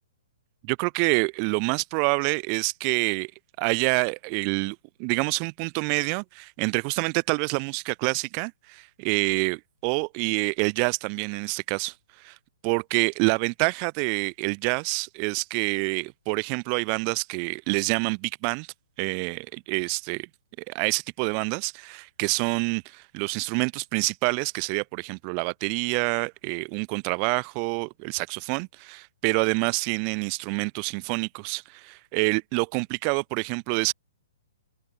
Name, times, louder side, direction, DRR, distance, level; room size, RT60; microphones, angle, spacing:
voice 1, 0.6-3.3 3.6-12.4 12.6-18.7 19.0-20.3 20.7-33.9, right 40 dB or more, 35° right, 1.8 m, -27 dB
figure-of-eight pair, 120°, 0 cm